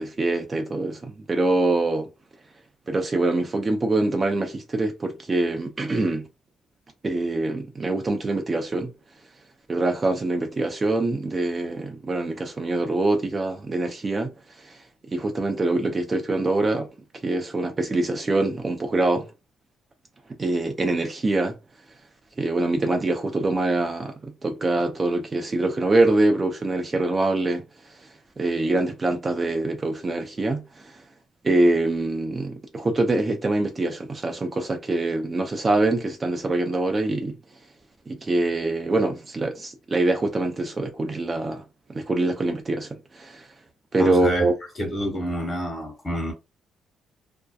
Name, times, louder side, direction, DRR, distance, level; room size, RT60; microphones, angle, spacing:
voice 1, 0.0-2.1 2.9-6.3 7.0-8.9 9.7-14.3 14.6-14.8 15.1-16.9 17.2-19.3 20.4-21.6 22.4-27.6 28.4-31.0 31.4-37.4 38.1-41.6 41.9-43.5 43.9-44.5, right 2 dB, 30° right, 0.5 m, -24 dB
voice 2, 44.0-44.5 44.8-46.3, equal, 25° left, 1.2 m, -28 dB
2.6 x 2.1 x 2.3 m
cardioid pair, 90°, 0 cm